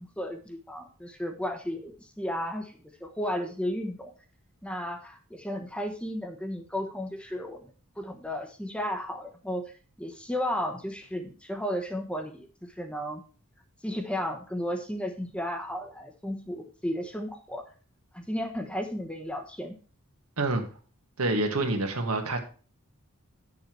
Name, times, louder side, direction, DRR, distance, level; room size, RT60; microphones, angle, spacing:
voice 1, 0.0-4.1 4.6-7.7 8.0-13.2 13.8-17.7 18.1-19.8, equal, 5° left, 5 dB, 1.0 m, -34 dB
voice 2, 21.2-22.4, right 2 dB, 85° right, 4 dB, 1.8 m, -27 dB
9.7 x 6.9 x 4.5 m, 0.38 s
head